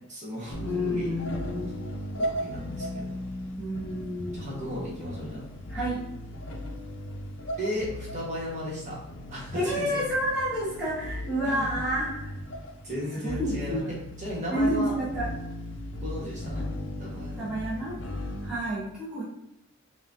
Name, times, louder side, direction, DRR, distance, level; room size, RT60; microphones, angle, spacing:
voice 1, 0.1-0.6 0.8-1.1 2.2-3.1 4.3-5.4 7.6-9.0 9.3-10.0 11.4-11.7 12.8-13.8 14.2-14.9 16.0-16.7 17.0-17.5, equal, 35° right, -5 dB, 1.2 m, -35 dB
sound 1, 0.5-18.5, left 1 dB, 55° left, 0.5 m, -37 dB
voice 2, 0.6-1.8 3.6-4.8 5.7-6.0 9.5-12.3 13.2-14.0 14.5-15.3 17.4-19.2, equal, 5° right, -10 dB, 0.8 m, -30 dB
5.7 x 2.4 x 2.6 m, 0.86 s
head